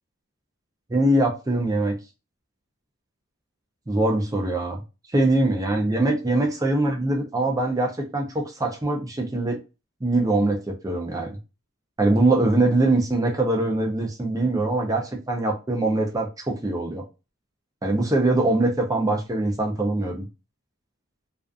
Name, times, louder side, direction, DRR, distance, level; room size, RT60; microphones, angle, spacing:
voice 1, 0.9-1.9 3.9-4.8 5.1-9.6 10.0-11.4 12.0-17.0 17.8-20.3, right 2 dB, 15° right, 2 dB, 0.4 m, -23 dB
2.4 x 2.3 x 2.4 m, 0.30 s
head